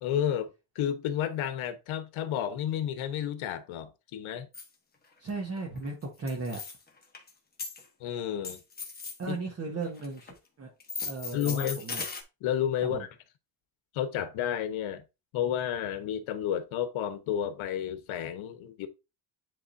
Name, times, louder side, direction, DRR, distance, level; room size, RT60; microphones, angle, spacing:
voice 1, 0.0-4.5 8.0-8.6 9.3-9.4 11.3-11.8 12.4-13.1 13.9-15.0 15.3-18.9, left 10 dB, 85° left, 1.1 m, -31 dB
sound 1, 4.5-4.7 5.3-5.4 5.6-5.9 6.3-7.3 7.6-7.8 8.4-9.2 9.8-10.3 10.8-12.2, left 4 dB, 20° left, 1.1 m, -37 dB
voice 2, 5.2-6.6 9.2-10.7 11.0-12.0 12.9-13.0, right 3 dB, 30° right, 1.2 m, -36 dB
10.0 x 3.7 x 2.6 m
cardioid pair, 170°, 47 cm